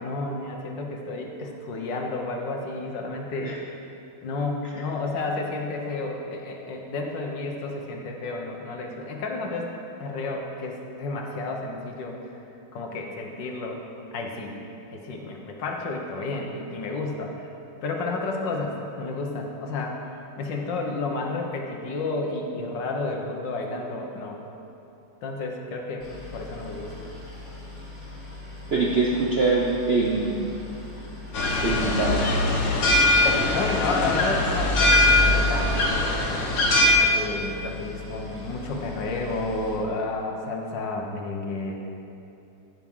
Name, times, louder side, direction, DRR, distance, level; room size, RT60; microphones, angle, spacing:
voice 1, 0.0-3.5 4.2-9.7 10.0-12.3 12.7-13.8 14.1-14.6 14.9-17.5 17.8-20.0 20.4-24.4 25.2-26.1 26.3-27.0 28.7-28.8 33.5-36.1 36.3-41.8, left 3 dB, 60° left, 1 dB, 1.7 m, -31 dB
Boat Water vehicle, 26.0-39.8, left 2 dB, 15° left, 2.2 m, -41 dB
voice 2, 28.7-30.4 31.6-32.3, right 3 dB, 75° right, -3 dB, 0.5 m, -23 dB
sound 1, 31.3-36.9, left 1 dB, 90° left, 2.1 m, -21 dB
15.0 x 6.2 x 5.5 m, 2.8 s
omnidirectional pair, 2.4 m